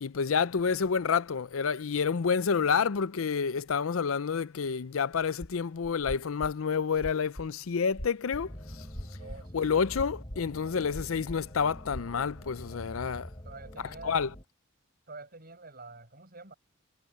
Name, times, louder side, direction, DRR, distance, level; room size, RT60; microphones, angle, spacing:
voice 1, 0.0-8.9 9.5-13.3 14.0-14.3, left 6 dB, 80° left, 0.5 m, -29 dB
sound 1, 5.4-5.6 6.0-7.5 7.9-8.4 8.9-9.4 9.9-10.6 10.9-11.5 11.8-12.0, equal, 55° left, 5.7 m, -40 dB
sound 2, 8.3-14.4, equal, 25° left, 3.2 m, -45 dB
voice 2, 9.2-10.0 10.6-11.1 13.4-14.3 15.1-16.5, right 3 dB, 45° right, 7.8 m, -48 dB
head